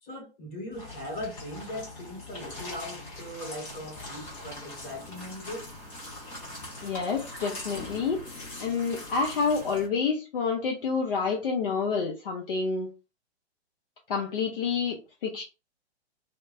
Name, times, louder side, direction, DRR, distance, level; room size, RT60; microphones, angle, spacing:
voice 1, 0.0-5.7, left 1 dB, 25° left, 1.3 m, -39 dB
sound 1, 0.7-9.9, left 2 dB, 10° left, 0.3 m, -42 dB
voice 2, 6.8-8.2 8.6-12.9 14.1-15.4, left 5 dB, 55° left, 0.7 m, -28 dB
3.0 x 2.1 x 2.6 m
figure-of-eight pair, 110°, 34 cm